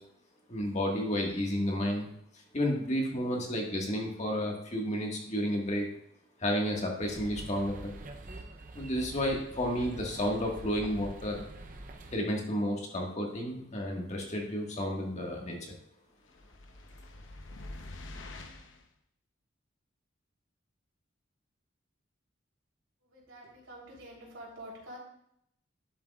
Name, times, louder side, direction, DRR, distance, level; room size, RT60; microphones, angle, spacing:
voice 1, 0.5-2.1 2.5-5.9 6.4-7.9 8.7-11.4 12.1-15.7, equal, 35° left, -1 dB, 1.7 m, -31 dB
sound 1, 7.0-12.2, right 1 dB, 45° right, 0.7 m, -45 dB
sound 2, 16.3-18.9, left 2 dB, 75° left, 0.9 m, -46 dB
voice 2, 23.1-25.0, equal, 80° right, -4 dB, 3.4 m, -47 dB
11.5 x 7.4 x 2.4 m, 0.74 s
head